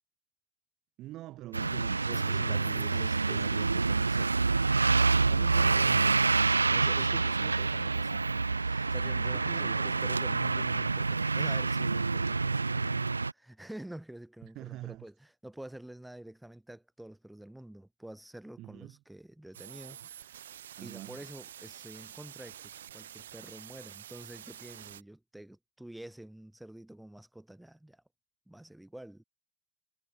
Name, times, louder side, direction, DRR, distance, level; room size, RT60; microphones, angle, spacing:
voice 1, 1.0-3.6 5.3-6.2 9.3-10.1 14.5-15.0 18.6-18.9 20.8-21.2, right 16 dB, 35° right, 2.9 m, -45 dB
sound 1, 1.5-13.3, right 3 dB, 80° right, 0.4 m, -27 dB
voice 2, 2.0-4.5 6.7-20.4 20.8-28.0 28.5-29.2, right 1 dB, 5° right, 5.0 m, -48 dB
sound 2, 19.5-25.0, right 11 dB, 60° right, 2.9 m, -48 dB
figure-of-eight pair, 90°, 0 cm